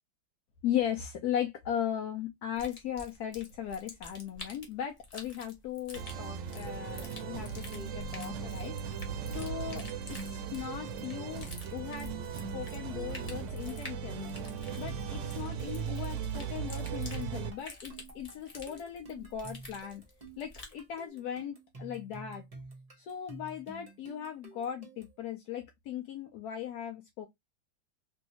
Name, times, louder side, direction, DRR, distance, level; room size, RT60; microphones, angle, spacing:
voice 1, 0.6-8.7 9.3-12.1 12.5-14.3 14.8-20.0 20.4-22.4 23.0-27.3, left 9 dB, 75° left, 0.9 m, -38 dB
sound 1, 2.5-20.8, left 2 dB, 60° left, 0.4 m, -49 dB
sound 2, 5.9-17.5, right 7 dB, 75° right, 1.1 m, -38 dB
sound 3, 12.9-25.2, right 3 dB, 25° right, 0.8 m, -51 dB
3.1 x 2.7 x 2.9 m
omnidirectional pair, 2.2 m